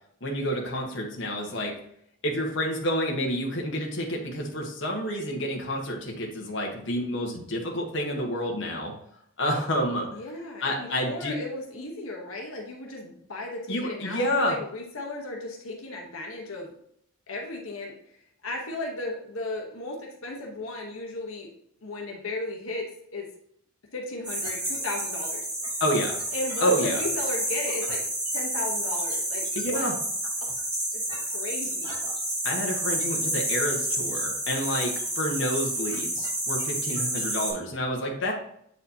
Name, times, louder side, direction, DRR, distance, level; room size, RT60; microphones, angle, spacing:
voice 1, 0.2-1.8 2.2-8.9 9.4-10.1 10.6-11.4 13.7-14.6 25.8-26.2 26.6-27.0 29.5-30.0 32.4-38.3, equal, 60° left, 0 dB, 1.2 m, -29 dB
voice 2, 10.1-16.7 17.3-17.9 18.4-21.5 21.8-22.8 23.1-23.3 23.9-25.5 26.3-28.0 28.3-29.9 30.4-30.6 30.9-32.0, left 2 dB, 75° left, 0 dB, 1.2 m, -35 dB
sound 1, 24.2-37.5, right 1 dB, 20° right, 2.5 m, -30 dB
8.0 x 4.8 x 2.8 m, 0.71 s
head